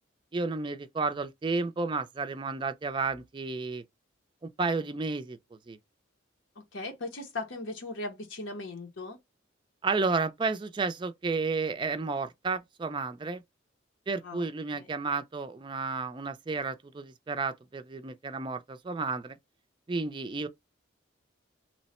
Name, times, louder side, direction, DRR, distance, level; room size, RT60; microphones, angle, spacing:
voice 1, 0.3-3.8 4.4-5.8 9.8-13.4 14.1-19.4 19.9-20.5, right 4 dB, 25° right, 0.4 m, -32 dB
voice 2, 6.7-9.2 14.2-14.5 14.7-14.9, left 2 dB, 80° left, 0.8 m, -38 dB
3.0 x 2.1 x 4.1 m
head